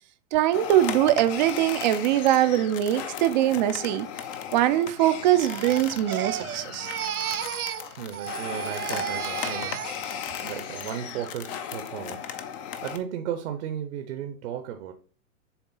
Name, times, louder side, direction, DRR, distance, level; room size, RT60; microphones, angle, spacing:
voice 1, 0.3-4.1 4.5-6.9, right 12 dB, 35° right, 0.5 m, -22 dB
sound 1, 0.5-13.0, left 8 dB, 25° left, 0.5 m, -36 dB
Crying sobbing, 5.3-10.3 10.7-11.1, right 10 dB, 85° right, 0.6 m, -33 dB
voice 2, 8.0-10.1 10.4-12.4 12.8-14.9, right 9 dB, 50° right, 0.9 m, -35 dB
7.1 x 3.6 x 3.9 m
figure-of-eight pair, 110°, 42 cm